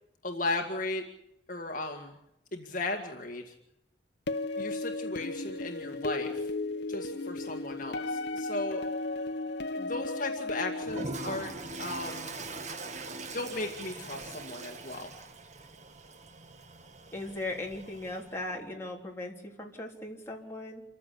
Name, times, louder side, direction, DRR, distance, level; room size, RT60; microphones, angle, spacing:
voice 1, 0.2-1.0 1.5-2.2 2.5-3.5 4.6-6.5 6.9-8.8 9.7-12.3 13.3-15.1, left 2 dB, 45° left, 2 dB, 2.0 m, -36 dB
sound 1, 4.3-11.1, left 2 dB, 60° left, 0.8 m, -34 dB
Toilet flush, 10.8-18.4, right 3 dB, 40° right, 1.4 m, -42 dB
voice 2, 17.1-20.8, left 2 dB, 15° left, -1 dB, 3.8 m, -38 dB
28.0 x 15.0 x 8.4 m, 0.83 s
head